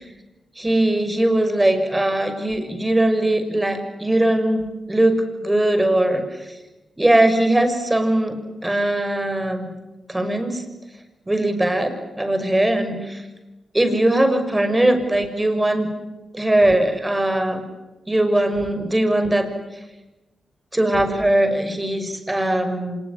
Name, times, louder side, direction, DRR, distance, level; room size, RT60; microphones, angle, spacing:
voice 1, 0.6-6.5 7.0-9.7 10.1-10.6 11.3-13.2 13.7-15.9 16.3-17.7 18.1-19.5 20.7-23.0, right 1 dB, 20° right, 7 dB, 6.5 m, -20 dB
26.0 x 21.0 x 10.0 m, 1.1 s
supercardioid pair, 45°, 0 cm